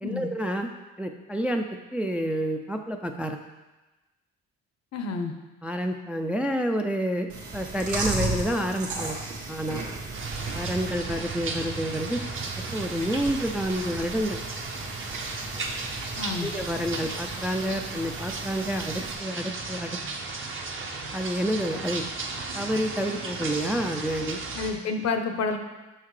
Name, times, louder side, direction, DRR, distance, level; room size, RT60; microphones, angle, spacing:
voice 1, 0.0-1.7 1.9-3.4 5.6-9.2 9.5-9.9 10.5-12.2 12.7-14.4 16.4-20.0 21.1-22.0 22.5-24.4, equal, 5° right, 4 dB, 0.3 m, -29 dB
voice 2, 4.9-5.3 16.2-16.5 24.5-25.6, left 4 dB, 60° left, 6 dB, 0.8 m, -29 dB
Chewing mastication, 7.3-19.1, right 2 dB, 75° right, 1.4 m, -36 dB
sound 1, 10.1-24.7, right 3 dB, 45° right, 0.9 m, -35 dB
6.2 x 5.7 x 3.2 m, 1.1 s
cardioid pair, 90°, 30 cm